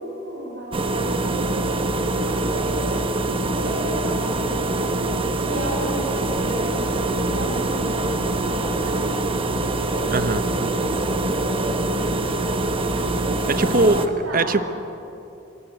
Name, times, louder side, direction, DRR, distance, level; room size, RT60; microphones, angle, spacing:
voice 1, 0.0-3.0 3.5-4.9 5.4-12.8 13.5-14.6, equal, 75° right, -5 dB, 6.0 m, -33 dB
sound 1, 0.7-14.1, right 2 dB, 30° right, 1.2 m, -24 dB
voice 2, 10.1-10.4 13.5-14.0 14.3-14.6, right 3 dB, 50° right, 11 dB, 1.0 m, -20 dB
25.5 x 21.0 x 8.2 m, 2.8 s
head